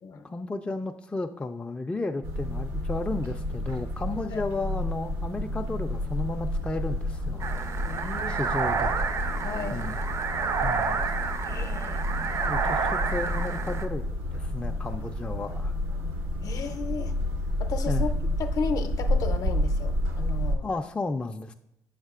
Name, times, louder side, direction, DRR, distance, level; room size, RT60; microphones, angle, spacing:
voice 1, 0.2-7.8 8.3-9.0 9.7-10.0 10.6-11.0 12.5-15.7 17.9-18.1 20.6-21.5, left 3 dB, 15° left, 5 dB, 0.4 m, -33 dB
sound 1, 2.2-20.6, left 1 dB, 85° right, 0.9 m, -30 dB
sound 2, 7.4-13.9, right 5 dB, 45° right, 0.5 m, -30 dB
voice 2, 7.8-8.4 9.4-9.8 11.4-12.5 16.4-17.1 17.6-18.1 18.4-20.7, left 5 dB, 55° left, 8 dB, 0.6 m, -34 dB
7.3 x 6.4 x 2.4 m, 0.84 s
supercardioid pair, 75°, 7 cm